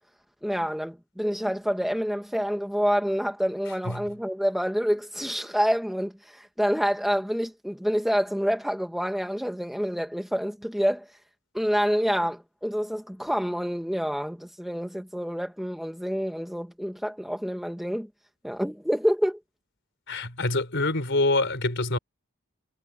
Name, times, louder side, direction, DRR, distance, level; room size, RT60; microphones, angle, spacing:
voice 1, 0.4-11.1 11.5-18.1 18.4-19.4, equal, ahead, 1.4 m, -27 dB
voice 2, 20.1-22.0, left 2 dB, 55° left, 4.4 m, -25 dB
head